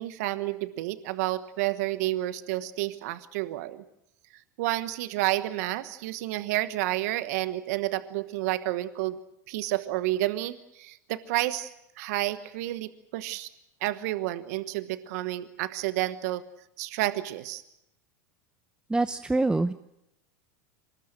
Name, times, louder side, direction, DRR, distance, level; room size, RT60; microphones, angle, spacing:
voice 1, 0.0-3.8 4.6-9.2 9.5-13.5 13.8-16.4 16.8-17.6, right 16 dB, 65° right, 13 dB, 1.2 m, -30 dB
voice 2, 18.9-19.7, right 2 dB, 10° right, 12 dB, 0.8 m, -25 dB
24.5 x 20.0 x 7.6 m, 0.83 s
hypercardioid pair, 90°, 9 cm